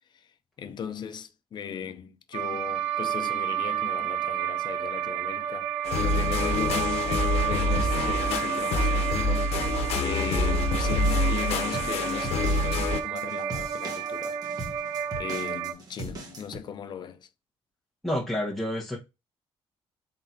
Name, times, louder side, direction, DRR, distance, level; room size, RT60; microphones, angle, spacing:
voice 1, 0.6-5.7 6.0-9.6 10.0-14.4 15.2-17.3, left 7 dB, 45° left, 0.7 m, -37 dB
sound 1, 2.3-15.7, right 9 dB, 90° right, 0.7 m, -31 dB
sound 2, 5.8-13.0, left 2 dB, 90° left, 0.9 m, -26 dB
sound 3, 11.0-16.6, right 2 dB, 40° right, 1.5 m, -40 dB
voice 2, 18.0-19.0, left 1 dB, ahead, 1.2 m, -29 dB
3.9 x 3.8 x 2.8 m
cardioid pair, 125°, 10 cm